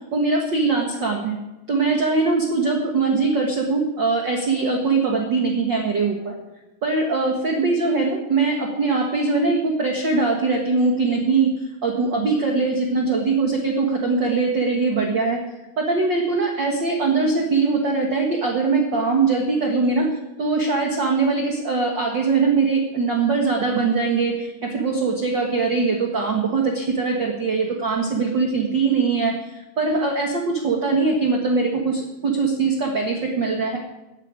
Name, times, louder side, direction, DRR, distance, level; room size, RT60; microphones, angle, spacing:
voice 1, 0.1-1.4 1.7-6.3 6.8-15.4 15.8-20.1 20.4-29.3 29.8-33.8, right 4 dB, 50° right, 0 dB, 1.4 m, -21 dB
14.5 x 9.0 x 9.0 m, 1.0 s
omnidirectional pair, 4.8 m